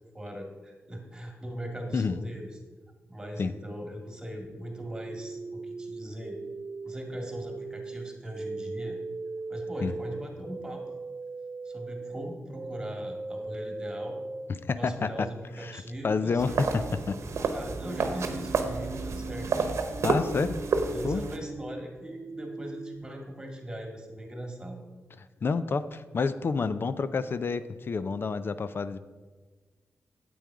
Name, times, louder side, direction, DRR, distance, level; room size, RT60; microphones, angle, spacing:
voice 1, 0.1-2.5 3.1-6.4 6.8-9.0 9.5-10.8 11.6-14.2 14.8-16.8 17.2-19.5 20.9-24.8, equal, 15° right, 2 dB, 2.2 m, -40 dB
sound 1, 4.7-14.5 17.8-23.0, right 3 dB, 45° right, 0.5 m, -39 dB
voice 2, 14.7-15.3 15.6-17.2 20.0-20.6 21.0-21.3 25.4-29.0, left 4 dB, 50° left, 14 dB, 0.5 m, -29 dB
sound 2, 16.4-21.4, right 4 dB, 70° right, 1.0 m, -30 dB
9.0 x 7.8 x 4.7 m, 1.3 s
cardioid pair, 80°, 5 cm